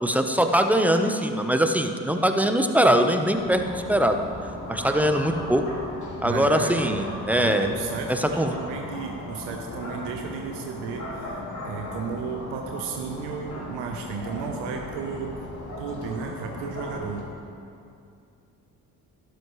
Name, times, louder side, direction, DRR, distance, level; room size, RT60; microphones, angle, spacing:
voice 1, 0.0-4.3 4.7-5.6 6.2-7.7 8.1-8.6, equal, 5° right, 6 dB, 1.0 m, -22 dB
sound 1, 3.3-17.2, left 1 dB, 40° left, 2.9 m, -37 dB
voice 2, 6.2-15.4 15.8-17.3, right 5 dB, 70° right, 2 dB, 1.1 m, -34 dB
13.0 x 12.0 x 3.2 m, 2.5 s
hypercardioid pair, 50°, 44 cm